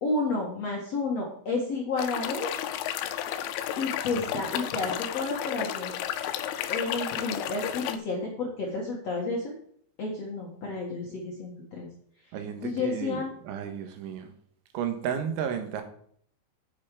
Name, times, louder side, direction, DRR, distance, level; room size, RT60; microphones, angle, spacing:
voice 1, 0.0-2.5 3.8-5.9 6.7-9.6 10.0-11.9 12.6-13.3, left 3 dB, 60° left, -2 dB, 1.7 m, -31 dB
sound 1, 2.0-8.0, left 11 dB, 90° left, 2.3 m, -32 dB
voice 2, 12.3-14.3 14.7-15.8, right 8 dB, 85° right, 6 dB, 3.7 m, -33 dB
9.0 x 8.3 x 4.8 m, 0.63 s
omnidirectional pair, 5.4 m